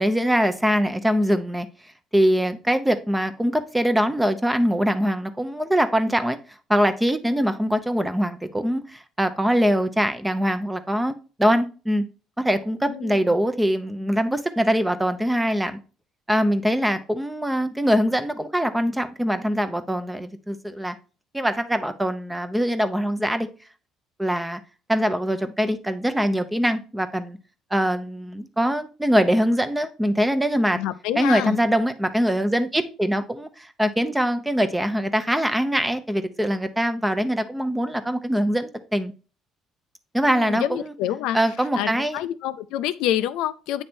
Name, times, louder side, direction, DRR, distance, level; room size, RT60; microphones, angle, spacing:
voice 1, 0.0-1.7 2.1-6.4 6.7-11.1 11.4-12.0 12.4-15.8 16.3-20.9 21.3-23.5 24.2-24.6 24.9-27.4 27.7-30.8 31.2-39.1 40.1-40.9 41.3-42.2, equal, 5° right, 0.7 m, -23 dB
voice 2, 12.9-13.3 30.7-31.6 40.3-41.4 41.7-43.8, left 12 dB, 85° left, 0.4 m, -27 dB
8.7 x 3.3 x 4.3 m
cardioid pair, 105°, 0 cm